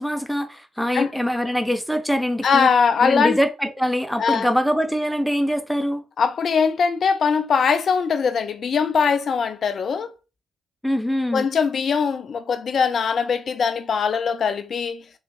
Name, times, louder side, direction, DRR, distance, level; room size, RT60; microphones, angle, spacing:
voice 1, 0.0-2.7 3.0-6.0 10.8-11.5, equal, ahead, 0.7 m, -23 dB
voice 2, 2.4-3.4 4.2-4.5 6.2-10.1 11.3-15.0, left 6 dB, 60° left, 0.5 m, -21 dB
3.5 x 2.5 x 3.1 m
hypercardioid pair, 40°, 0 cm